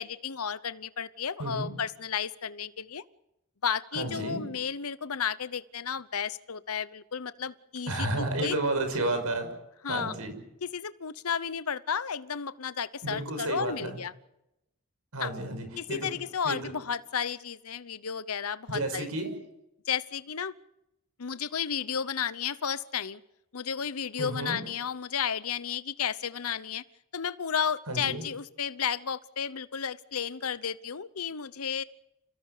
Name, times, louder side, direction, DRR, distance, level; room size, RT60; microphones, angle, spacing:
voice 1, 0.0-3.0 3.6-8.6 9.8-10.1 10.6-14.1 15.2-15.3 15.8-19.1 19.9-20.5 21.2-23.2 23.5-26.8 27.1-31.8, left 7 dB, 80° left, 16 dB, 0.9 m, -33 dB
voice 2, 1.4-1.7 3.9-4.4 7.9-9.5 9.9-10.3 13.0-14.0 15.1-16.2 16.4-16.7 18.7-19.3 24.2-24.6 27.9-28.2, right 2 dB, 90° right, 7 dB, 5.7 m, -31 dB
28.5 x 17.0 x 6.7 m, 0.85 s
head